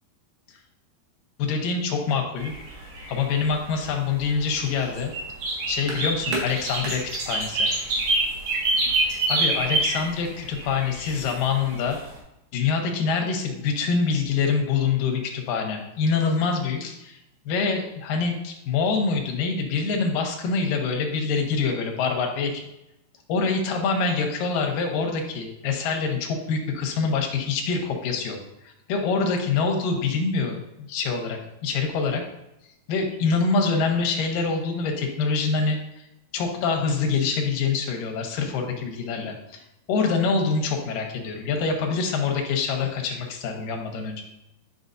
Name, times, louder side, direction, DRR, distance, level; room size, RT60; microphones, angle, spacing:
voice 1, 1.4-2.6 3.1-5.1 5.7-7.7 9.3-12.0 12.5-17.2 17.5-22.6 23.3-28.4 28.6-32.2 32.9-36.0 36.3-39.6 39.9-44.2, left 4 dB, 70° left, 2 dB, 2.3 m, -25 dB
sound 1, 2.4-12.2, right 2 dB, 75° right, 3.7 m, -27 dB
9.4 x 6.0 x 2.6 m, 0.91 s
omnidirectional pair, 4.7 m